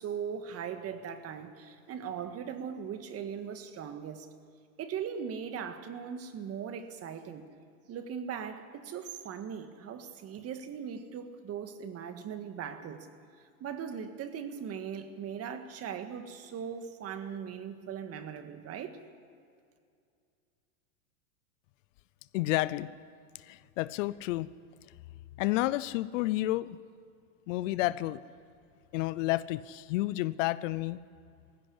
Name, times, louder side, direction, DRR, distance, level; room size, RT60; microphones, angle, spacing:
voice 1, 0.0-4.3 4.8-7.5 7.9-13.1 13.6-19.0, right 7 dB, 35° right, 8 dB, 1.7 m, -39 dB
voice 2, 22.3-22.9 23.3-24.5 25.4-26.8 27.5-28.2 28.9-31.0, left 17 dB, 60° left, 17 dB, 0.7 m, -30 dB
18.0 x 16.0 x 9.9 m, 2.3 s
supercardioid pair, 125°, 43 cm